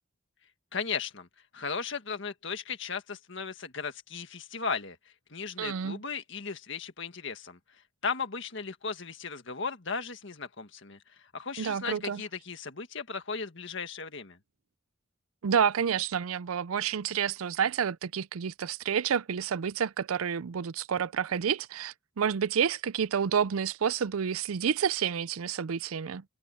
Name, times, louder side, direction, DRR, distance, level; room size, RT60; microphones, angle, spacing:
voice 1, 0.7-1.3 1.5-5.0 5.3-7.6 8.0-14.4, left 5 dB, 60° left, 1.7 m, -36 dB
voice 2, 5.6-6.0 11.6-12.2 15.4-26.2, right 7 dB, 85° right, 0.5 m, -29 dB
head